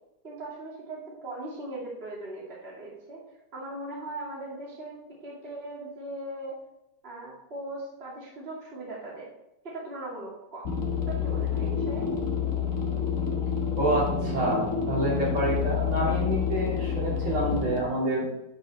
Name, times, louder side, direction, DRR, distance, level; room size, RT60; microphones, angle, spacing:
voice 1, 0.2-3.2 3.5-6.6 7.0-9.3 9.6-10.8 11.1-12.1, right 2 dB, 30° right, -5 dB, 2.6 m, -39 dB
sound 1, 10.6-17.8, left 7 dB, 45° left, 1.4 m, -28 dB
voice 2, 13.8-18.3, right 1 dB, 70° right, -6 dB, 4.3 m, -27 dB
11.5 x 5.5 x 4.2 m, 0.86 s
omnidirectional pair, 2.3 m